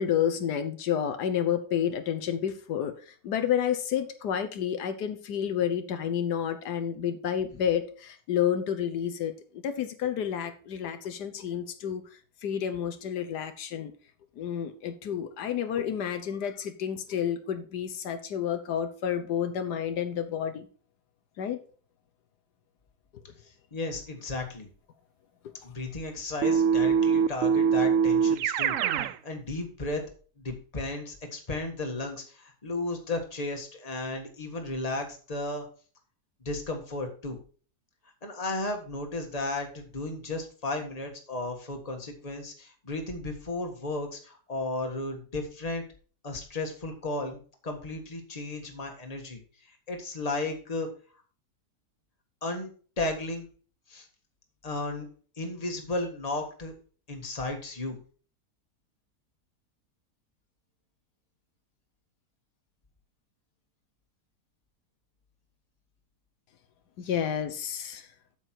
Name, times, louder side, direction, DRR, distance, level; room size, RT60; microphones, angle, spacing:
voice 1, 0.0-12.0 12.4-13.9 14.4-20.7 21.4-21.6 25.4-25.5 67.0-68.1, left 9 dB, 80° left, 9 dB, 1.4 m, -30 dB
voice 2, 23.7-24.7 25.6-28.8 29.2-30.0 30.4-35.7 36.4-37.4 38.2-45.8 46.2-49.4 49.9-50.9 52.4-52.7 53.0-53.5 53.9-54.1 54.6-55.1 55.4-56.7 57.1-58.0, left 2 dB, 25° left, 3 dB, 1.6 m, -34 dB
Keyboard (musical), 26.4-29.1, right 7 dB, 65° right, 0.8 m, -23 dB
8.2 x 7.3 x 4.5 m, 0.40 s
omnidirectional pair, 1.7 m